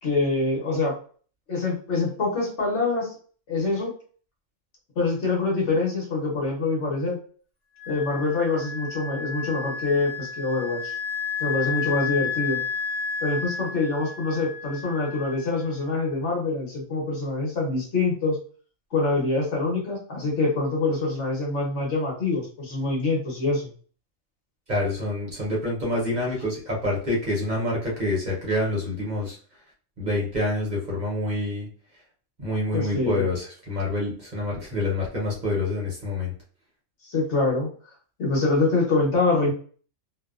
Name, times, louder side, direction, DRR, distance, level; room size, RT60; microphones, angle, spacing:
voice 1, 0.0-0.9 1.5-3.1 3.5-3.9 5.0-7.2 7.9-10.9 11.4-12.6 13.2-18.4 18.9-23.7 32.7-33.3 37.0-37.7 38.2-39.5, left 3 dB, 70° left, -2 dB, 1.2 m, -25 dB
Wind instrument woodwind instrument, 7.8-16.0, left 6 dB, 35° left, 1.3 m, -32 dB
voice 2, 24.7-29.4 30.0-31.7 32.4-36.3, left 1 dB, 40° right, -3 dB, 0.8 m, -27 dB
2.7 x 2.1 x 2.3 m, 0.43 s
omnidirectional pair, 1.3 m